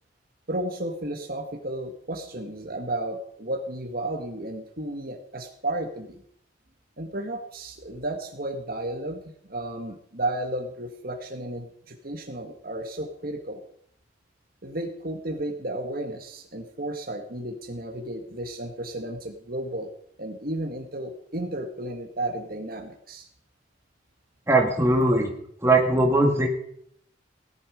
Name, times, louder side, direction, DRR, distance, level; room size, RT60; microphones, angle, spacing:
voice 1, 0.5-6.2 7.0-13.6 14.6-19.9 20.2-23.3, right 1 dB, 50° right, 4 dB, 1.8 m, -33 dB
voice 2, 24.5-25.3 25.6-26.5, right 2 dB, 15° right, 1 dB, 2.3 m, -20 dB
17.5 x 12.0 x 5.2 m, 0.67 s
head